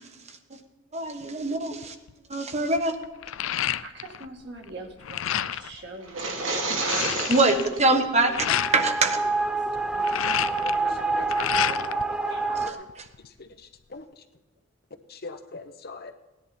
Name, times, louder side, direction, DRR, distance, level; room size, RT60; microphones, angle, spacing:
voice 1, 0.9-1.9 2.3-2.9 7.3-9.2 12.5-13.1, right 2 dB, 35° right, 6 dB, 1.3 m, -24 dB
sound 1, 1.8-2.1 2.5-4.3 4.6-5.7 6.2-6.3 6.5-8.8 9.8-12.0 12.4-13.3, left 10 dB, 80° left, 0.4 m, -30 dB
voice 2, 3.5-7.3 10.0-12.0 12.2-12.4, right 2 dB, 55° right, 1 dB, 2.1 m, -43 dB
sound 2, 6.0-7.8, right 3 dB, 80° right, 2.4 m, -29 dB
sound 3, 8.3-12.7, right 3 dB, 5° right, 0.5 m, -27 dB
voice 3, 15.1-16.1, left 3 dB, 50° left, 7 dB, 1.0 m, -40 dB
17.5 x 11.0 x 4.3 m, 1.1 s
head